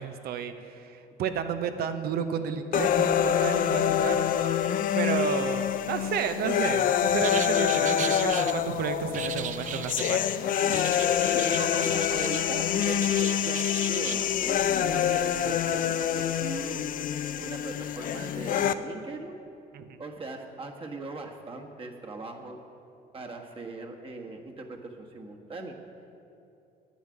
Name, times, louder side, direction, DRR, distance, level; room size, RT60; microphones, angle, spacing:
voice 1, 0.0-4.3 4.9-10.3 15.4-15.6 19.7-20.0, right 7 dB, 65° right, 9 dB, 0.9 m, -32 dB
sound 1, 2.7-18.7, left 9 dB, 55° left, 0.5 m, -26 dB
sound 2, 7.2-8.5 9.1-10.2 10.7-12.4 12.8-14.2, right 9 dB, 50° right, 0.5 m, -37 dB
voice 2, 11.2-16.8 17.4-19.4 20.0-22.6 23.1-25.8, right 3 dB, 30° right, 2 dB, 1.5 m, -39 dB
10.0 x 7.3 x 9.4 m, 2.7 s
cardioid pair, 110°, 17 cm